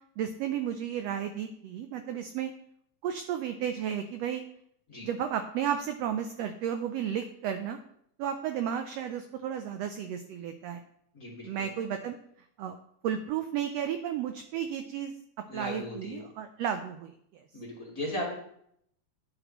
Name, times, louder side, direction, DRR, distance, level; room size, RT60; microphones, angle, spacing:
voice 1, 0.2-2.5 3.0-4.4 5.0-7.8 8.2-10.8 11.4-12.2 12.6-12.7 13.0-15.1 15.5-17.4, right 9 dB, 85° right, 8 dB, 1.4 m, -33 dB
voice 2, 11.1-11.7 15.5-16.3 17.5-18.3, left 1 dB, 35° left, -3 dB, 1.5 m, -37 dB
10.0 x 8.0 x 3.0 m, 0.71 s
omnidirectional pair, 3.4 m